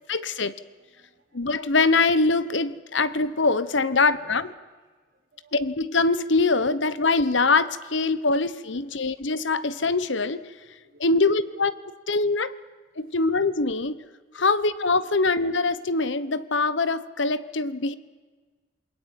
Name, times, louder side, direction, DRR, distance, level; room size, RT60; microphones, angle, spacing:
voice 1, 0.1-0.5 1.3-4.5 5.5-10.5 11.0-11.7 12.1-12.5 13.0-14.0 14.3-18.0, left 3 dB, 70° left, 15 dB, 1.2 m, -23 dB
voice 2, 0.8-1.5 2.7-2.8 3.7-4.4 5.1-5.6 6.7-6.8 8.4-9.0 10.7-11.2 11.5-11.6, right 1 dB, 45° right, 0 dB, 7.2 m, -54 dB
28.5 x 22.0 x 9.1 m, 1.4 s
head